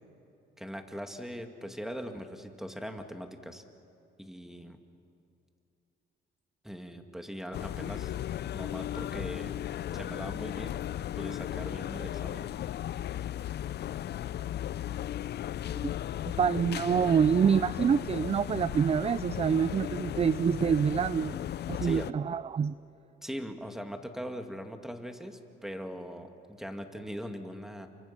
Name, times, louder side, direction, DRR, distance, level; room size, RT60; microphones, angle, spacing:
voice 1, 0.6-3.6 4.2-4.8 6.6-8.1 8.5-9.5 9.9-10.8 11.2-12.4 21.8-22.1 23.2-27.9, equal, ahead, 5 dB, 2.3 m, -40 dB
sound 1, 7.5-22.1, left 11 dB, 55° left, 0.5 m, -36 dB
voice 2, 16.3-21.4 21.7-22.7, right 7 dB, 30° right, 15 dB, 0.4 m, -26 dB
29.0 x 24.5 x 5.9 m, 2.7 s
cardioid pair, 90°, 20 cm